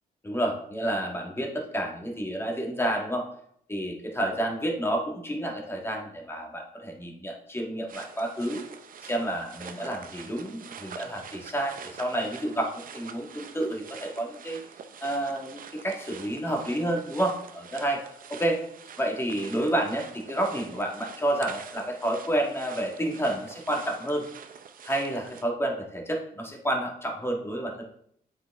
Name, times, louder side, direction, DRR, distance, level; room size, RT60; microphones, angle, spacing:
voice 1, 0.2-3.2 3.7-8.6 9.0-14.6 15.0-18.0 18.3-18.6 19.0-24.3 24.8-27.8, right 1 dB, 15° left, 1 dB, 1.6 m, -30 dB
sound 1, 7.9-25.4, right 7 dB, 60° right, 0.6 m, -46 dB
7.5 x 5.0 x 3.5 m, 0.69 s
cardioid pair, 80°, 16 cm